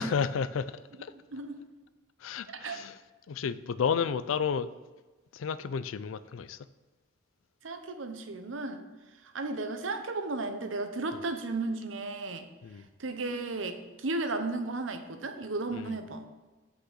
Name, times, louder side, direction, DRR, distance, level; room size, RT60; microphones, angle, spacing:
voice 1, 0.0-1.1 2.2-3.0 3.3-4.7 5.3-6.6 12.6-12.9 15.7-16.0, left 6 dB, 80° left, 0.4 m, -32 dB
voice 2, 1.3-1.6 2.5-2.8 7.6-8.8 9.2-12.5 13.0-16.2, right 3 dB, 70° right, 0.8 m, -34 dB
6.0 x 5.6 x 6.5 m
head